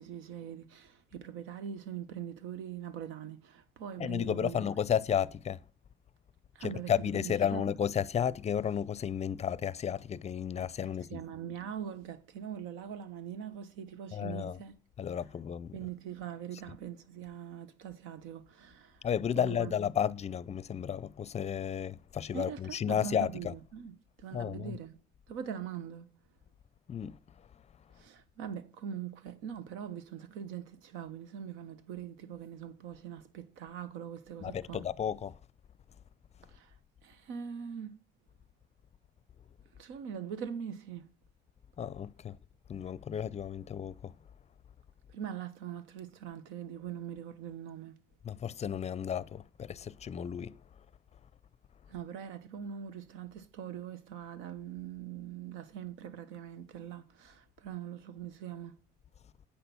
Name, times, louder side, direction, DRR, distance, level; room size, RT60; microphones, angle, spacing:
voice 1, 0.0-4.6 6.5-7.7 11.1-14.7 15.7-19.1 19.3-19.7 22.3-25.0 25.3-26.1 27.9-34.8 36.4-36.8 37.0-38.0 39.7-41.1 45.1-48.0 51.9-58.8, right 8 dB, 85° right, 1.1 m, -42 dB
voice 2, 4.0-5.6 6.6-11.2 14.1-14.6 15.0-15.8 19.0-23.5 24.3-24.8 26.9-27.2 34.4-35.4 41.8-42.4 42.7-44.1 48.2-50.6, left 8 dB, 35° left, 0.5 m, -33 dB
8.5 x 6.0 x 6.9 m
cardioid pair, 95°, 20 cm